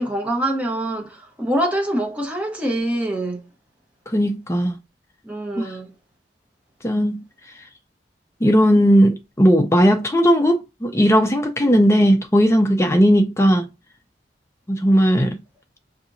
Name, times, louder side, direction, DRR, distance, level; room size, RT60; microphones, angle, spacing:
voice 1, 0.0-3.5 5.2-5.9, right 1 dB, 10° right, 0.9 m, -25 dB
voice 2, 4.1-4.8 6.8-7.2 8.4-13.7 14.7-15.4, equal, 15° left, 0.5 m, -17 dB
5.9 x 2.8 x 2.6 m
head